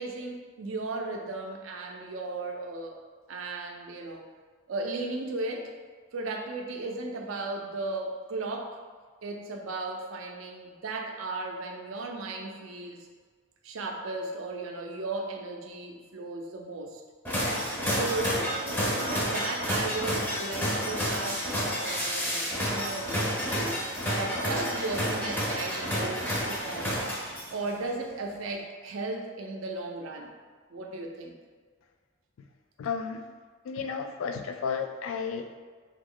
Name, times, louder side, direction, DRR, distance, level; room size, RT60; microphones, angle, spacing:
voice 1, 0.0-3.0 3.3-4.2 4.7-5.7 6.1-8.8 9.2-13.1 13.6-17.0 18.0-27.1 27.5-30.3 30.7-31.3, right 2 dB, 85° right, 2 dB, 0.5 m, -36 dB
sound 1, 17.2-27.7, equal, 10° left, 0.5 m, -30 dB
voice 2, 32.8-33.2 33.7-35.6, left 6 dB, 85° left, 6 dB, 0.3 m, -33 dB
2.9 x 2.3 x 3.7 m, 1.5 s
head